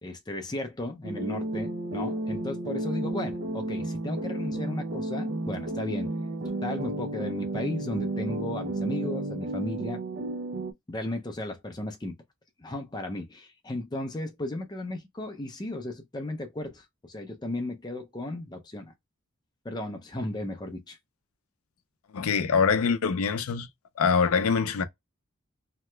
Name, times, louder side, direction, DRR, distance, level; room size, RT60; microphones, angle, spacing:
voice 1, 0.0-6.1 6.6-10.0 10.9-12.1 12.6-18.9 19.6-21.0, left 1 dB, 20° left, 0.5 m, -35 dB
sound 1, 1.0-10.7, right 2 dB, 50° right, 0.4 m, -32 dB
voice 2, 22.1-23.7 24.0-24.8, left 5 dB, 90° left, 0.5 m, -24 dB
2.8 x 2.1 x 3.2 m
head